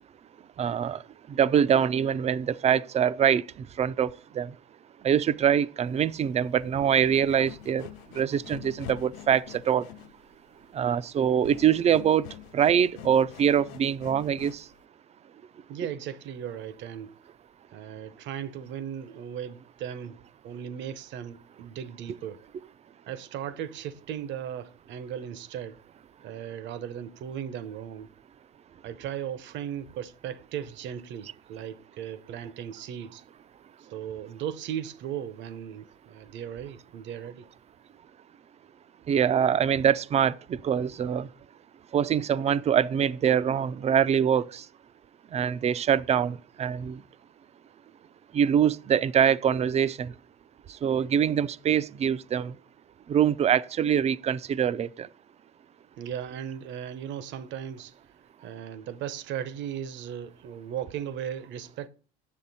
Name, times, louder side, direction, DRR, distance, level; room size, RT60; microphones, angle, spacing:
voice 1, 0.6-1.0 1.3-4.5 5.0-7.9 8.1-9.9 10.7-12.3 12.5-14.6 39.1-41.3 41.9-44.6 45.3-47.0 48.3-50.1 50.8-52.5 53.1-55.1, right 8 dB, 30° right, 0.4 m, -24 dB
sound 1, 5.9-14.8, left 14 dB, 85° left, 0.5 m, -46 dB
voice 2, 15.7-17.2 17.7-20.2 20.4-22.4 23.1-25.8 26.2-28.1 28.8-33.2 33.9-37.5 56.0-57.9 58.4-61.9, right 9 dB, 60° right, 0.8 m, -37 dB
8.7 x 7.1 x 4.1 m
supercardioid pair, 105°, 21 cm